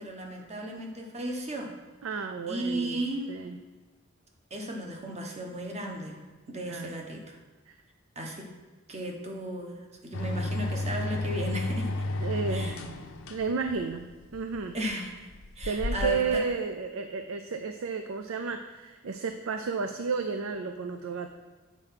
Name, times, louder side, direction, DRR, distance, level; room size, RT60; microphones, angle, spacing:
voice 1, 0.0-1.7 2.5-3.3 4.5-6.2 6.5-7.4 8.1-8.5 8.9-9.8 10.0-11.9 12.5-12.8 14.7-15.1 15.6-16.4, right 1 dB, 35° right, 1 dB, 1.1 m, -35 dB
voice 2, 2.0-3.6 6.6-6.9 7.7-7.8 12.2-12.9 13.3-14.0 14.3-14.8 15.6-21.3, right 5 dB, 75° right, 7 dB, 0.4 m, -32 dB
sound 1, 10.1-16.4, left 2 dB, 70° left, 0.6 m, -33 dB
8.0 x 4.5 x 5.8 m, 1.3 s
head